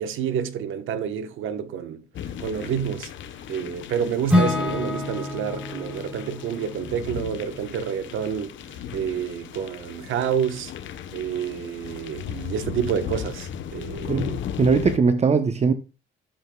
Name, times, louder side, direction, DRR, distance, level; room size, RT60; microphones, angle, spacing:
voice 1, 0.0-2.0 2.4-3.1 3.5-10.7 11.1-14.3, right 8 dB, 80° right, 1.2 m, -29 dB
sound 1, 2.1-15.0, left 9 dB, 70° left, 1.0 m, -36 dB
Acoustic guitar / Strum, 4.3-8.3, left 2 dB, 5° right, 4.6 m, -27 dB
voice 2, 14.1-15.7, right 5 dB, 35° right, 0.8 m, -20 dB
12.5 x 7.9 x 2.3 m
cardioid pair, 90°, 20 cm